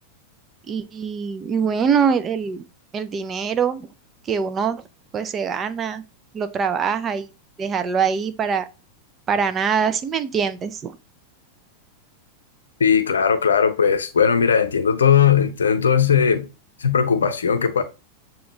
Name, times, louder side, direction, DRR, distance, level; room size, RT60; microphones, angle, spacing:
voice 1, 0.7-2.6 2.9-3.9 4.2-4.8 5.1-6.0 6.3-7.3 7.6-8.7 9.3-10.9, right 6 dB, 25° right, 0.5 m, -23 dB
voice 2, 12.8-16.5 16.8-17.8, left 7 dB, 70° left, 0.6 m, -18 dB
6.9 x 2.4 x 3.0 m
figure-of-eight pair, 90°, 0 cm